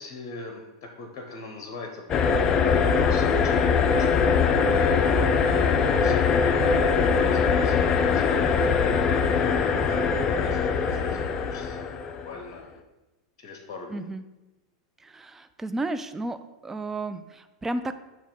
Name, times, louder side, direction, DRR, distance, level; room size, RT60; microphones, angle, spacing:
voice 1, 0.0-2.0 2.6-5.0 5.3-6.8 7.1-9.3 9.9-12.0 12.2-12.7 13.4-14.0, left 3 dB, 50° left, 3 dB, 1.0 m, -41 dB
sound 1, 2.1-12.4, left 5 dB, 35° left, 0.5 m, -22 dB
voice 2, 13.9-14.2 15.0-16.4 16.6-17.9, right 2 dB, 15° right, 10 dB, 0.5 m, -32 dB
8.3 x 3.0 x 5.2 m, 1.1 s
hypercardioid pair, 90°, 2 cm